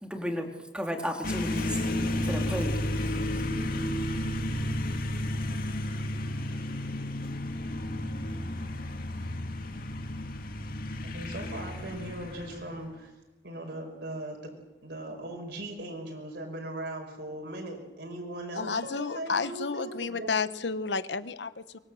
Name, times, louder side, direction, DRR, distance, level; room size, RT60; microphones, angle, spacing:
voice 1, 0.0-1.8 2.2-2.7, equal, 5° right, 3 dB, 3.0 m, -33 dB
sound 1, 1.2-13.0, left 1 dB, 55° left, 2.3 m, -32 dB
voice 2, 11.1-13.1 13.4-14.5 14.8-20.3, right 1 dB, 65° right, 1 dB, 5.6 m, -39 dB
voice 3, 18.5-21.8, left 4 dB, 75° left, 13 dB, 1.1 m, -31 dB
24.5 x 22.0 x 7.8 m, 1.0 s
head